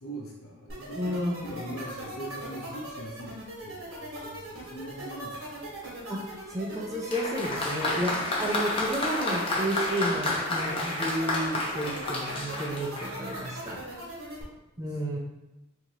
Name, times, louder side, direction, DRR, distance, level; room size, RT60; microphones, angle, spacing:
voice 1, 0.0-3.3 3.6-5.8 14.8-14.9, right 1 dB, 80° left, -3 dB, 0.7 m, -41 dB
sound 1, 0.7-14.4, right 1 dB, 70° right, 1.2 m, -40 dB
voice 2, 1.0-1.3 6.1-6.2 6.5-13.8 14.8-15.2, right 1 dB, 15° right, -1 dB, 0.4 m, -31 dB
Applause, 7.1-13.5, left 2 dB, 25° left, 0.6 m, -30 dB
4.5 x 2.6 x 2.8 m, 0.99 s
head